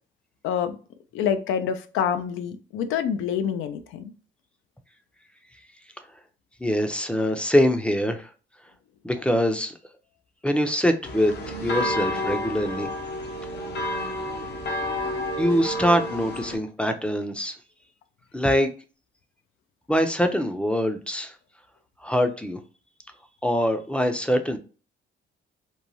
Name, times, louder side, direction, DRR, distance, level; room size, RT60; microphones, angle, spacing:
voice 1, 0.4-0.8 1.1-4.1, left 8 dB, 90° left, 9 dB, 0.4 m, -26 dB
voice 2, 6.6-8.3 9.0-9.7 10.4-12.9 15.4-17.5 18.3-18.7 19.9-21.4 22.0-22.6 23.4-24.6, equal, 5° left, 8 dB, 0.4 m, -23 dB
sound 1, 11.0-16.6, left 1 dB, 60° left, 0.7 m, -30 dB
3.0 x 2.2 x 2.6 m, 0.36 s
cardioid pair, 90°, 20 cm